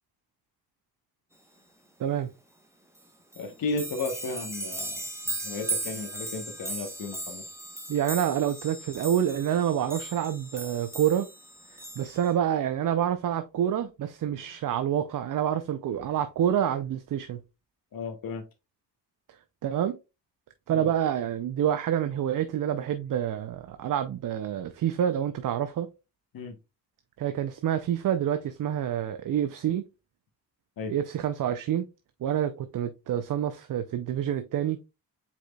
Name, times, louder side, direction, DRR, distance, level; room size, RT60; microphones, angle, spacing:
voice 1, 2.0-2.3 7.9-11.3 11.7-17.4 19.3-20.0 20.7-25.9 27.2-29.8 30.9-31.9 32.2-34.8, right 10 dB, 50° right, 0.5 m, -27 dB
sound 1, 3.0-3.1 3.3-12.3, right 2 dB, 5° right, 0.9 m, -37 dB
voice 2, 3.4-5.1 5.4-7.4 17.9-18.4 20.7-20.9 26.3-26.5 30.8-30.9, left 3 dB, 55° left, 1.0 m, -34 dB
4.9 x 4.1 x 2.3 m
cardioid pair, 70°, 41 cm